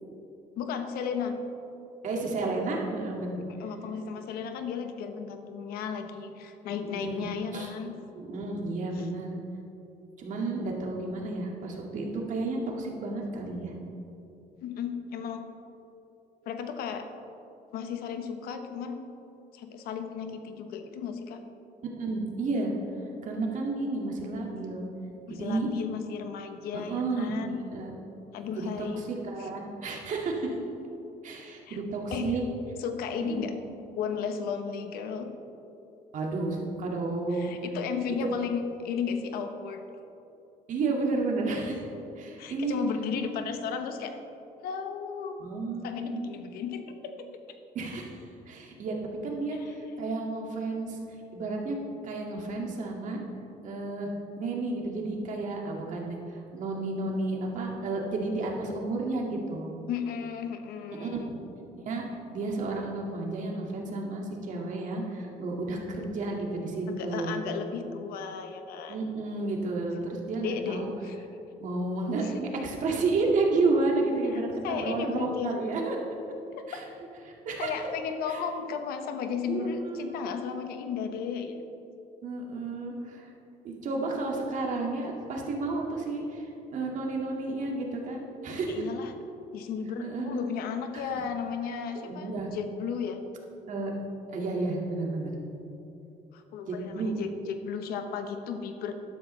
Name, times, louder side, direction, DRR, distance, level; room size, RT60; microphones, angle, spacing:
voice 1, 0.6-1.4 3.6-7.9 8.9-9.1 14.6-15.4 16.4-17.1 17.7-19.0 19.5-21.4 25.3-27.6 28.3-29.0 29.4-29.5 31.7-31.8 32.1-32.3 32.8-33.5 34.0-35.3 37.3-39.8 42.4-44.2 44.6-45.4 45.8-47.3 49.5-49.7 59.9-61.4 66.9-69.0 70.4-71.3 72.2-72.3 74.3-75.5 76.6-76.8 77.6-81.5 88.7-89.1 89.5-93.2 96.3-98.9, left 6 dB, 80° left, 7 dB, 1.0 m, -34 dB
voice 2, 2.0-3.4 6.7-7.7 8.1-9.3 10.2-13.7 22.0-22.7 23.2-24.8 25.3-25.7 26.7-27.9 28.6-30.5 31.2-32.4 33.2-33.4 36.1-37.6 40.7-41.9 42.2-42.8 45.4-46.3 47.7-49.0 49.2-51.0 51.3-51.8 52.0-53.2 53.6-54.1 54.4-56.2 56.5-59.7 61.0-61.4 61.7-62.0 62.3-67.3 68.9-70.9 71.6-76.0 76.7-76.8 77.2-77.7 78.3-78.4 79.5-80.3 82.2-83.3 83.6-86.5 86.7-88.8 90.0-90.4 90.9-91.1 92.0-92.5 93.7-93.9 94.3-95.3 96.7-97.1, right 3 dB, 55° right, 0 dB, 2.1 m, -31 dB
12.5 x 11.5 x 3.3 m, 2.9 s
cardioid pair, 120°, 15 cm